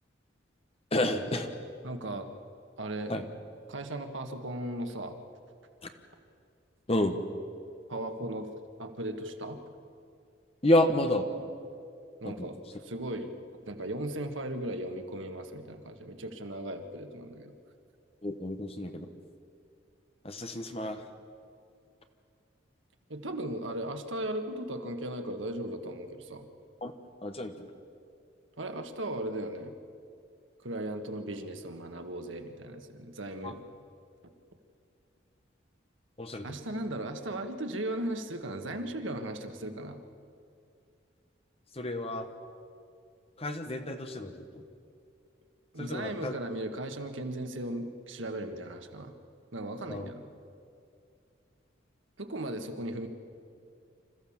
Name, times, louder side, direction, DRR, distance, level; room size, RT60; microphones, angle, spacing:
voice 1, 0.9-1.5 3.1-3.2 5.8-5.9 6.9-7.2 10.6-11.3 12.2-12.5 18.2-19.1 20.2-21.1 26.8-26.9 27.2-27.7 33.4-33.5 36.2-36.6 41.7-42.3 43.4-44.6 45.8-46.3 49.9-50.1, left 1 dB, 30° left, 6 dB, 1.3 m, -30 dB
voice 2, 1.8-2.3 2.8-3.1 3.7-5.2 7.9-8.5 8.8-9.6 12.2-12.6 12.8-13.4 13.7-17.5 23.1-26.5 28.6-29.7 30.6-33.6 36.4-40.0 45.7-49.1 49.5-50.3 52.2-53.1, right 1 dB, 80° right, 6 dB, 1.6 m, -37 dB
26.5 x 14.5 x 7.3 m, 2.4 s
head